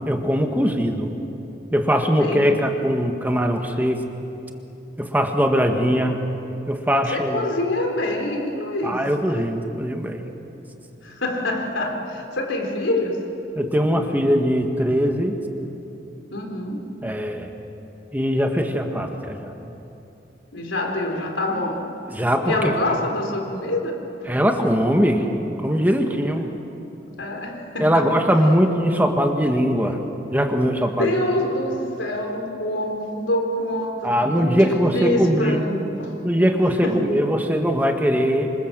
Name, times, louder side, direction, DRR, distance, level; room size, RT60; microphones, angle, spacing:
voice 1, 0.1-1.1 1.7-4.0 5.0-6.2 6.7-7.4 8.8-10.2 13.5-15.4 17.0-17.5 18.1-19.5 22.1-22.7 24.3-26.5 27.8-30.0 30.3-31.1 34.0-35.7 36.2-38.5, equal, 10° right, 4 dB, 1.7 m, -21 dB
voice 2, 2.1-2.5 7.1-9.0 11.0-13.2 16.3-17.0 20.5-21.8 22.4-24.0 27.2-28.1 30.9-36.1 36.8-37.1, left 1 dB, 90° left, 2 dB, 4.2 m, -26 dB
27.0 x 26.0 x 7.6 m, 2.9 s
head